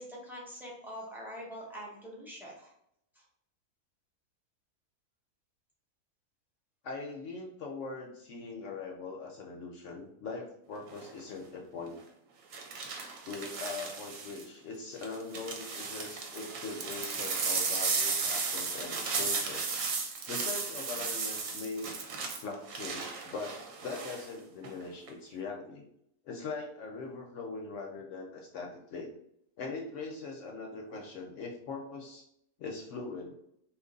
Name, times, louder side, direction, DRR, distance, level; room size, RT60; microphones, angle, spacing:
voice 1, 0.0-2.7 3.1-3.2, equal, 5° right, -5 dB, 0.3 m, -44 dB
voice 2, 6.8-12.0 13.3-19.7 20.3-21.9 22.4-25.9 26.2-29.1 29.6-32.3 32.6-33.3, left 4 dB, 65° left, 0 dB, 0.8 m, -41 dB
sound 1, 10.9-11.2 12.5-14.4 15.0-24.3 24.6-25.1, right 4 dB, 65° right, 0.9 m, -35 dB
2.9 x 2.5 x 3.8 m, 0.75 s
omnidirectional pair, 1.6 m